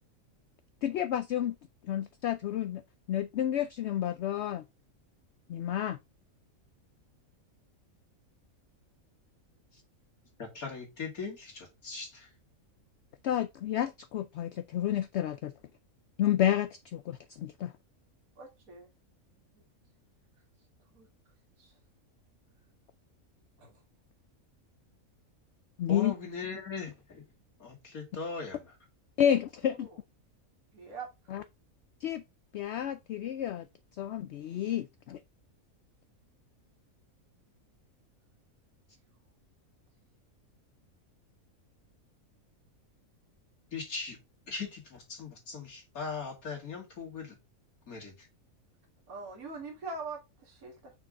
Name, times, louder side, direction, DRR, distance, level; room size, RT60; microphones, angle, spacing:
voice 1, 0.8-1.6 1.8-2.8 3.1-4.6 5.5-6.0 13.2-15.5 16.2-17.7 25.8-26.1 29.2-29.9 31.3-31.4 32.0-32.2 32.5-33.7 34.0-35.2, left 10 dB, 65° left, 0.7 m, -30 dB
voice 2, 10.4-12.3 25.9-27.2 27.6-28.7 43.7-44.2 44.5-47.3 47.9-48.3, left 4 dB, 80° left, 2.8 m, -39 dB
voice 3, 18.4-18.9 19.5-19.6 20.9-21.1 21.6-21.7 23.6-23.8 29.6-29.9 30.7-31.1 49.1-50.9, right 3 dB, 80° right, 2.4 m, -43 dB
5.9 x 4.6 x 3.7 m
omnidirectional pair, 1.5 m